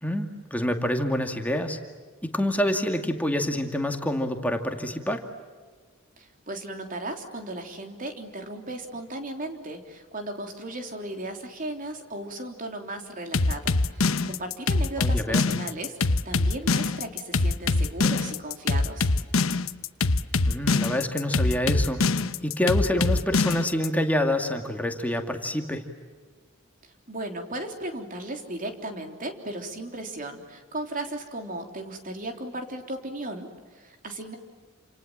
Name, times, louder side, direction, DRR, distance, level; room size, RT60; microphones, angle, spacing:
voice 1, 0.0-1.8 2.2-5.2 15.0-15.5 20.4-22.0 22.4-25.8, left 1 dB, 10° left, 4 dB, 2.3 m, -27 dB
voice 2, 6.2-19.1 27.1-34.4, right 1 dB, 40° right, 4 dB, 3.5 m, -36 dB
sound 1, 13.3-23.9, left 3 dB, 85° left, 1.0 m, -23 dB
29.0 x 27.5 x 7.5 m, 1.5 s
head